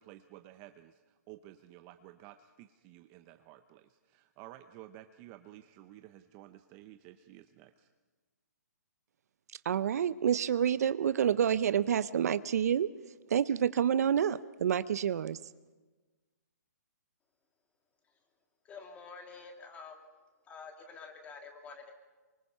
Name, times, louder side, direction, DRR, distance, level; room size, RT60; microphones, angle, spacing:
voice 1, 0.0-7.9, right 14 dB, 25° right, 9 dB, 0.7 m, -53 dB
voice 2, 9.6-12.9 13.3-15.4, right 8 dB, 60° right, 15 dB, 0.6 m, -28 dB
voice 3, 18.6-20.0 20.5-21.9, left 5 dB, 15° left, 3 dB, 2.8 m, -48 dB
27.0 x 24.5 x 5.6 m, 1.3 s
hypercardioid pair, 155°, 10 cm